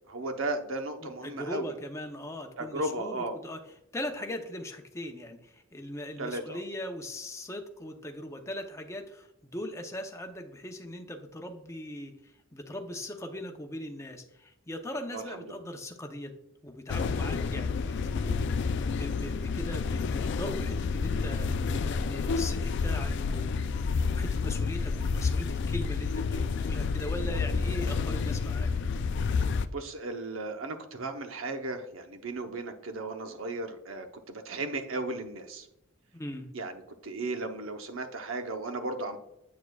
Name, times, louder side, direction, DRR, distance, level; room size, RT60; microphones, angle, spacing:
voice 1, 0.1-1.7 2.6-3.4 6.2-6.6 15.1-15.6 29.7-35.7 36.5-39.2, right 2 dB, 85° right, 6 dB, 0.8 m, -35 dB
voice 2, 1.0-3.6 3.9-12.1 12.5-16.3 16.6-18.4 18.8-28.7 36.1-36.5, left 1 dB, 15° left, 4 dB, 0.7 m, -40 dB
sound 1, 16.9-29.7, left 4 dB, 60° left, 0.4 m, -29 dB
8.4 x 6.5 x 2.3 m, 0.84 s
head